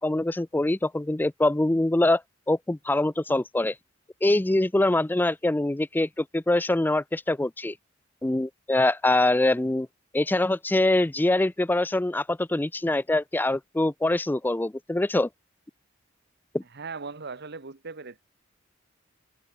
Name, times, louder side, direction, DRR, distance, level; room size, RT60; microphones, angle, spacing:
voice 1, 0.0-2.2 2.5-3.7 4.2-7.7 8.2-9.9 10.1-15.3 16.5-16.6, left 2 dB, 10° left, 0.4 m, -24 dB
voice 2, 16.7-18.2, right 4 dB, 55° right, 1.3 m, -38 dB
open air
head